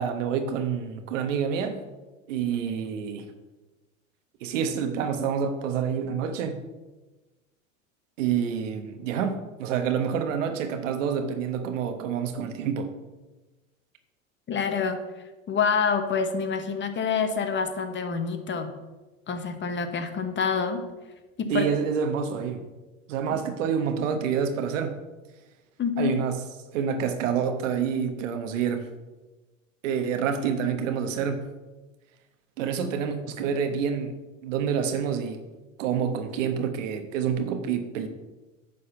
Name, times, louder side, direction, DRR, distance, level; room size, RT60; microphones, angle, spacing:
voice 1, 0.0-1.8 2.3-3.2 4.4-6.6 8.2-12.9 21.5-22.6 23.1-24.9 26.0-26.4 26.7-28.9 29.8-31.5 32.6-34.1 34.4-35.4 35.8-38.1, right 7 dB, 70° right, 7 dB, 1.3 m, -27 dB
voice 2, 14.5-15.0 15.5-18.7 19.3-20.8 21.4-21.7 23.3-23.4 25.8-26.1, left 6 dB, 30° left, 8 dB, 1.2 m, -27 dB
10.0 x 4.2 x 6.9 m, 1.2 s
hypercardioid pair, 90°, 39 cm